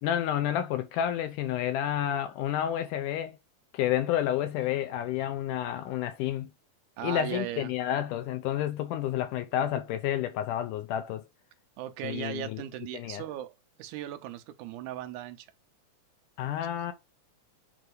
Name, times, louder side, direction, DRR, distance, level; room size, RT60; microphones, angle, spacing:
voice 1, 0.0-3.4 3.7-6.5 7.0-11.2 12.0-12.6 12.9-13.2 16.4-16.9, left 11 dB, 80° left, 2.1 m, -30 dB
voice 2, 7.0-7.7 11.8-13.5 13.8-15.5, right 11 dB, 75° right, 2.1 m, -37 dB
7.6 x 2.7 x 4.8 m
omnidirectional pair, 3.9 m